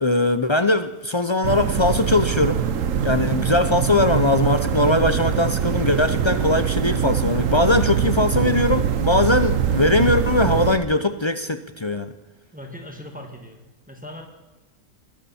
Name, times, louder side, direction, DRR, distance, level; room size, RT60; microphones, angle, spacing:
voice 1, 0.0-2.6 3.0-12.1, left 2 dB, 40° left, 10 dB, 0.4 m, -20 dB
sound 1, 1.4-10.8, right 8 dB, 60° right, 1.2 m, -23 dB
voice 2, 12.5-13.6 13.9-14.2, left 1 dB, 5° right, 3 dB, 2.0 m, -38 dB
22.0 x 12.5 x 4.3 m, 1.1 s
omnidirectional pair, 1.6 m